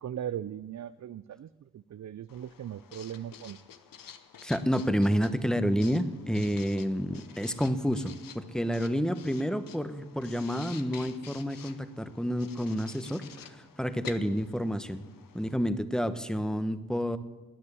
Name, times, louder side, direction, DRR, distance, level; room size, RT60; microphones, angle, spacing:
voice 1, 0.0-3.6, right 10 dB, 55° right, 15 dB, 0.5 m, -39 dB
Writing, 2.3-15.6, left 8 dB, 90° left, 0.9 m, -50 dB
voice 2, 4.4-13.2 13.5-15.0 15.3-17.2, equal, ahead, 11 dB, 1.2 m, -29 dB
14.0 x 9.7 x 9.8 m, 1.3 s
cardioid pair, 45°, 33 cm